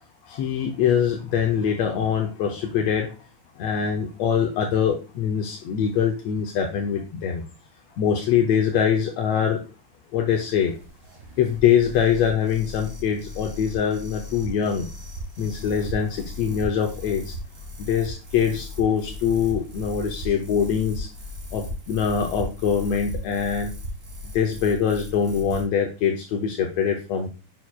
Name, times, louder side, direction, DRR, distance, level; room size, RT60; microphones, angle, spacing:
voice 1, 0.2-3.1 3.6-7.4 8.0-9.6 10.1-10.7 11.4-14.9 15.4-17.4 17.8-21.1 21.5-23.7 24.3-27.3, left 8 dB, 75° left, 2 dB, 1.8 m, -23 dB
sound 1, 10.3-25.6, left 1 dB, 50° right, 3.0 m, -37 dB
7.2 x 6.2 x 2.3 m, 0.32 s
omnidirectional pair, 3.3 m